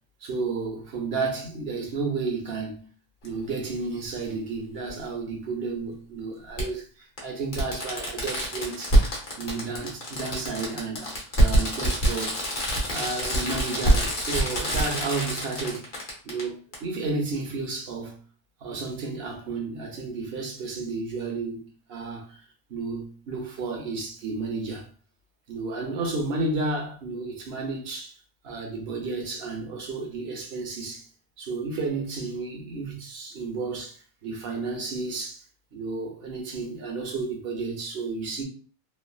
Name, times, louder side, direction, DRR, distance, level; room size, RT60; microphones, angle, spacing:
voice 1, 0.2-2.9 3.2-9.0 9.4-12.4 12.9-15.9 16.2-18.2 18.6-21.6 21.9-22.4 22.7-24.9 25.5-28.2 28.4-31.1 31.4-35.4 35.7-38.4, right 3 dB, 70° right, 1.0 m, -32 dB
Fireworks, 3.3-3.4 4.9-5.0 6.6-6.7 7.2-7.3 7.5-16.4 16.7-16.8, right 1 dB, 50° left, 1.1 m, -25 dB
3.1 x 2.3 x 2.3 m
omnidirectional pair, 1.1 m